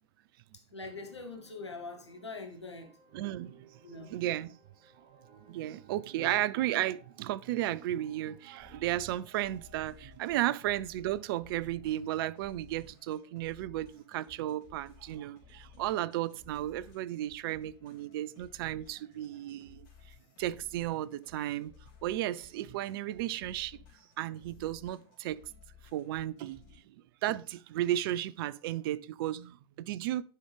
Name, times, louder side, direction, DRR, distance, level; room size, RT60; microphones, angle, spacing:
voice 1, 0.7-2.9 3.8-4.1 6.1-6.4 6.7-6.8, left 3 dB, 90° left, 1.1 m, -43 dB
sound 1, 0.8-12.1, right 6 dB, 40° right, 1.2 m, -61 dB
voice 2, 3.1-3.7 4.0-4.5 5.5-19.9 20.4-21.7 22.0-23.8 24.2-25.4 25.9-26.9 27.2-30.2, right 14 dB, 55° right, 0.5 m, -34 dB
sound 2, 8.6-26.8, left 5 dB, 55° left, 3.5 m, -58 dB
10.0 x 5.4 x 3.4 m
figure-of-eight pair, 85°, 14 cm